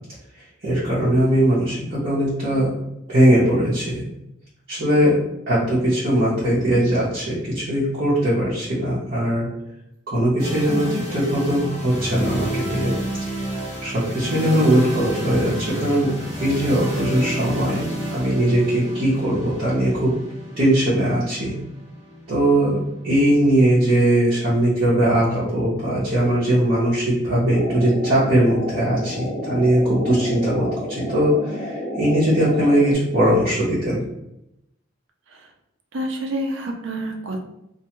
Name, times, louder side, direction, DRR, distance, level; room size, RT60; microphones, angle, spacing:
voice 1, 0.6-2.7 3.1-4.0 4.7-5.1 5.5-9.5 10.1-10.9 11.1-12.9 13.8-17.8 18.1-20.1 20.6-21.5 22.3-34.0, right 1 dB, 50° right, -9 dB, 0.8 m, -20 dB
sound 1, 10.4-24.2, equal, 20° right, 1.1 m, -31 dB
voice 2, 10.7-11.0 35.3-35.4 35.9-37.4, right 1 dB, 70° right, 3 dB, 0.5 m, -28 dB
sound 2, 27.5-32.9, equal, 45° left, 1.2 m, -30 dB
2.5 x 2.3 x 2.9 m, 0.84 s
head